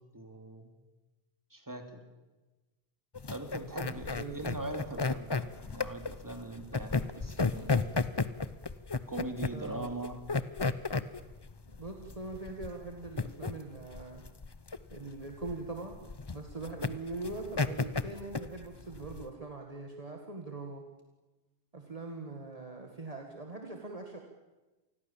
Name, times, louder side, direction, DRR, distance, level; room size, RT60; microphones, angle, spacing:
voice 1, 0.1-0.7 1.5-1.9 3.3-7.9 9.1-10.2, right 2 dB, 20° right, 5 dB, 2.7 m, -41 dB
sound 1, 3.1-19.3, left 4 dB, 25° left, 0.8 m, -34 dB
voice 2, 3.8-4.4 9.5-9.9 11.7-14.2 14.9-16.0 16.3-20.8 21.7-24.2, right 3 dB, 35° right, 2 dB, 2.0 m, -42 dB
27.5 x 20.5 x 7.2 m, 1.1 s
omnidirectional pair, 1.0 m